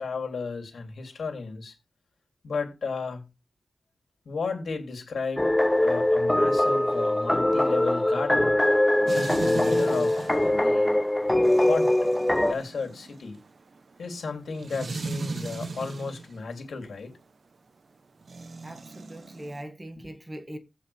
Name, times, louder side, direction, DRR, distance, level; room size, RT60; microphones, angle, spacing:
voice 1, 0.0-1.7 2.4-3.2 4.3-5.5 5.8-8.6 9.0-11.0 11.6-11.9 12.4-13.4 14.0-17.1, left 4 dB, 75° left, 2.8 m, -33 dB
sound 1, 5.4-12.5, left 1 dB, 10° left, 0.5 m, -22 dB
sound 2, 9.1-16.3 18.2-19.6, right 4 dB, 55° right, 0.9 m, -38 dB
voice 2, 18.6-20.6, right 1 dB, 20° right, 1.7 m, -41 dB
15.5 x 5.6 x 3.4 m
wide cardioid pair, 85°, 0 cm